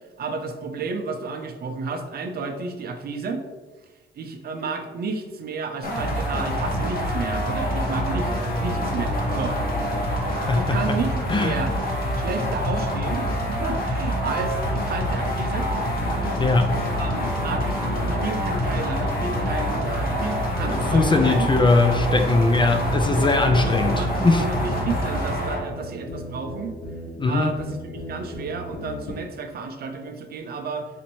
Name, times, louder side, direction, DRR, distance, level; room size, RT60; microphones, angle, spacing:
voice 1, 0.2-3.4 4.2-9.5 10.5-11.7 12.1-15.7 16.9-21.5 23.4-26.7 27.2-30.9, right 4 dB, 50° right, 5 dB, 0.5 m, -31 dB
sound 1, 5.8-25.6, equal, 45° left, 1.0 m, -26 dB
sound 2, 7.6-10.4, equal, 20° right, 0.8 m, -38 dB
voice 2, 10.5-11.0 11.3-11.6 16.2-16.8 20.6-24.4 27.2-27.5, left 3 dB, 25° left, 6 dB, 0.4 m, -21 dB
sound 3, 15.7-29.2, left 1 dB, 75° left, 0.9 m, -36 dB
4.2 x 2.6 x 3.0 m, 1.3 s
cardioid pair, 90°, 20 cm